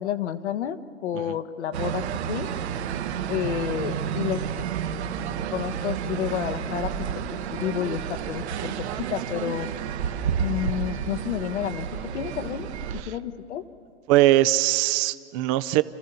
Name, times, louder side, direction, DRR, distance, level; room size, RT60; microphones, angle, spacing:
voice 1, 0.0-2.5 3.3-4.6 5.5-9.7 10.4-13.6, left 10 dB, 70° left, 9 dB, 1.4 m, -30 dB
sound 1, 1.7-13.0, right 8 dB, 60° right, 1.3 m, -30 dB
voice 2, 14.1-15.8, right 15 dB, 30° right, 14 dB, 0.6 m, -21 dB
29.5 x 14.0 x 6.9 m, 2.3 s
hypercardioid pair, 140°, 36 cm